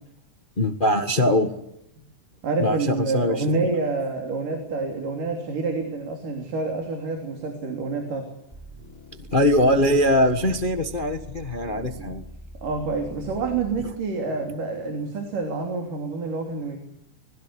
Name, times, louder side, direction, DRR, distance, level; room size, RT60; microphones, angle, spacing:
voice 1, 0.6-1.5 2.6-3.6 9.1-12.3, left 1 dB, 40° left, 7 dB, 0.7 m, -22 dB
voice 2, 2.4-8.3 11.7-12.1 12.6-16.8, right 3 dB, 80° right, 4 dB, 4.8 m, -28 dB
sound 1, 8.5-14.1, equal, 5° left, 5.4 m, -43 dB
26.0 x 21.0 x 8.2 m, 0.80 s
omnidirectional pair, 3.7 m